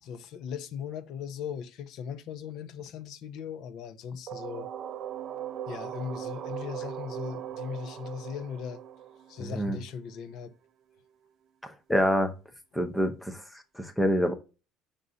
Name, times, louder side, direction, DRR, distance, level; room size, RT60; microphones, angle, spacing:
voice 1, 0.0-4.7 5.7-8.8 9.3-10.5, left 7 dB, 45° left, 0.7 m, -38 dB
sound 1, 4.3-10.0, right 10 dB, 35° right, 0.5 m, -39 dB
voice 2, 9.4-9.8 11.6-12.3 12.7-13.4 13.8-14.3, equal, 5° left, 0.7 m, -26 dB
5.4 x 4.1 x 4.8 m
cardioid pair, 180°, 0 cm